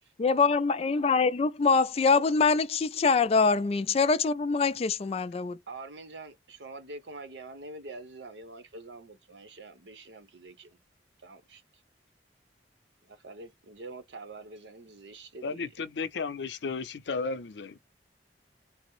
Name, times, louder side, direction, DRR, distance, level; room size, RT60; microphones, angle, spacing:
voice 1, 0.2-5.6, left 4 dB, 35° left, 0.3 m, -24 dB
voice 2, 5.7-10.8 11.2-11.6 13.0-15.7, right 3 dB, 85° right, 0.8 m, -45 dB
voice 3, 15.4-17.8, left 4 dB, 80° left, 0.6 m, -34 dB
3.3 x 2.0 x 3.0 m
head